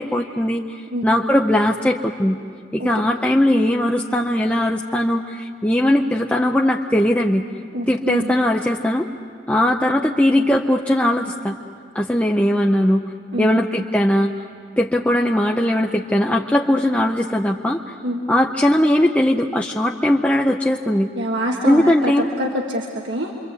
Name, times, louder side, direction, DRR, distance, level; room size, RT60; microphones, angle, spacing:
voice 1, 0.0-2.4 2.7-7.4 7.9-9.1 9.5-11.6 11.9-13.1 13.4-14.3 14.8-17.9 18.3-21.1 21.6-22.3, left 1 dB, 5° left, 1 dB, 0.6 m, -19 dB
voice 2, 7.7-8.3 13.3-13.6 18.0-18.2 21.2-22.1 22.4-23.3, equal, 75° right, 0 dB, 1.7 m, -25 dB
27.0 x 24.0 x 8.3 m, 2.3 s
head